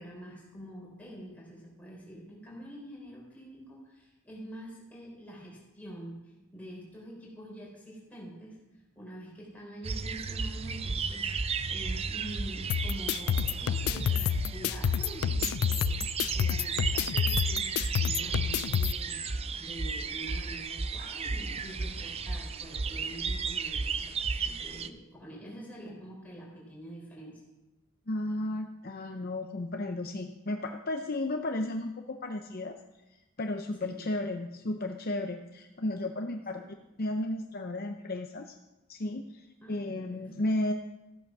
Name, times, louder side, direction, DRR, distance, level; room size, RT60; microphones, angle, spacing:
voice 1, 0.0-8.6 8.9-27.4 33.8-34.0 36.6-36.7 39.6-40.4, equal, 5° left, -4 dB, 4.6 m, -46 dB
sound 1, 9.8-24.9, right 4 dB, 25° right, 0.5 m, -34 dB
sound 2, 12.7-18.9, left 9 dB, 80° left, 0.3 m, -29 dB
voice 2, 28.1-32.8 33.4-36.6 37.0-38.5 38.9-40.7, left 1 dB, 45° left, 4 dB, 0.7 m, -33 dB
15.0 x 8.8 x 6.1 m, 1.0 s
head